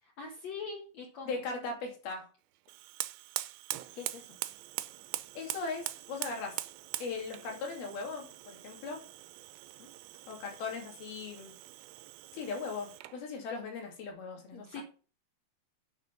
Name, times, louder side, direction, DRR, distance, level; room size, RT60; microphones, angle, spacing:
voice 1, 0.0-1.4 3.9-4.4 9.8-9.9 14.5-14.8, left 5 dB, 55° left, 0 dB, 2.5 m, -43 dB
voice 2, 1.3-2.3 5.4-6.6 7.0-9.0 10.3-11.5 12.3-14.8, left 4 dB, 80° left, 2 dB, 4.5 m, -39 dB
Fire, 2.7-13.2, right 16 dB, 85° right, 2.5 m, -42 dB
9.3 x 6.4 x 5.6 m, 0.37 s
omnidirectional pair, 4.3 m